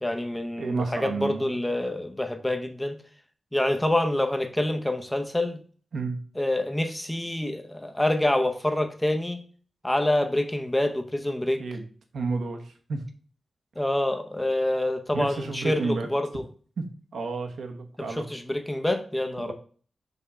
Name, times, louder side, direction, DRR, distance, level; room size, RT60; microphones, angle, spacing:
voice 1, 0.0-3.0 3.5-5.6 6.4-9.4 9.8-11.6 13.8-16.4 18.0-19.5, left 1 dB, 10° left, 0.7 m, -26 dB
voice 2, 0.6-1.6 5.9-6.2 11.6-11.9 12.1-13.0 15.1-16.1 16.8-16.9 17.1-18.3 19.4-19.5, right 4 dB, 75° right, 1.1 m, -31 dB
5.4 x 3.6 x 5.6 m
wide cardioid pair, 160°, 0 cm